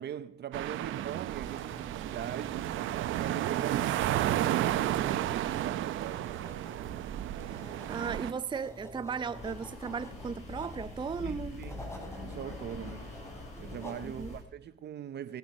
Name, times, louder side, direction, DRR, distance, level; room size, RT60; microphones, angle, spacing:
voice 1, 0.0-4.9 5.2-6.4 11.2-11.9 12.2-13.1 13.6-15.4, right 9 dB, 60° right, 0.8 m, -41 dB
sound 1, 0.5-8.3, right 13 dB, 85° right, 0.7 m, -32 dB
sound 2, 1.5-14.4, equal, 15° left, 3.7 m, -49 dB
voice 2, 7.4-11.6 14.0-14.4, right 6 dB, 25° right, 0.5 m, -37 dB
sound 3, 9.3-14.4, left 3 dB, 35° left, 6.5 m, -44 dB
17.0 x 10.5 x 5.4 m
cardioid pair, 90°, 20 cm